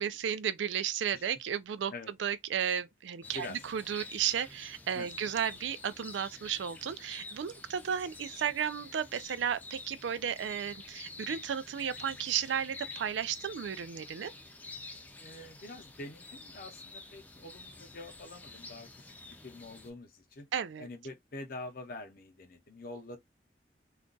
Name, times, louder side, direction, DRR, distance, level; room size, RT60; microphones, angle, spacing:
voice 1, 0.0-1.9 2.2-14.3 20.5-20.9, right 8 dB, 90° right, 0.4 m, -34 dB
sound 1, 3.2-19.9, left 3 dB, 10° left, 0.4 m, -49 dB
voice 2, 15.2-20.5 20.8-23.2, left 2 dB, 50° left, 0.6 m, -45 dB
2.4 x 2.2 x 3.8 m
head